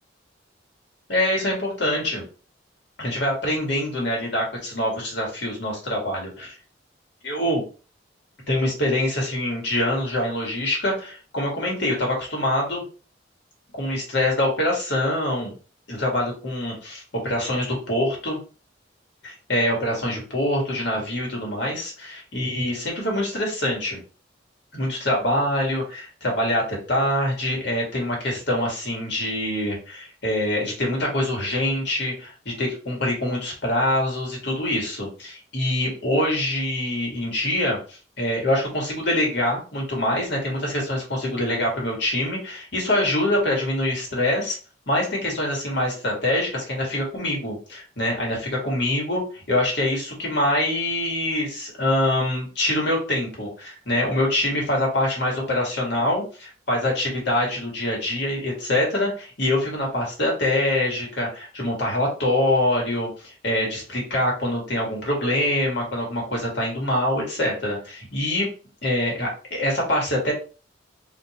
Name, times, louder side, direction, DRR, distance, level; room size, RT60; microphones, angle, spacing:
voice 1, 1.1-2.2 3.0-6.5 7.2-7.6 8.5-12.8 13.7-15.5 15.9-18.4 19.2-24.0 24.7-44.6 44.9-68.5 68.8-70.3, left 1 dB, 65° left, -1 dB, 1.8 m, -25 dB
4.2 x 2.6 x 3.0 m, 0.37 s
head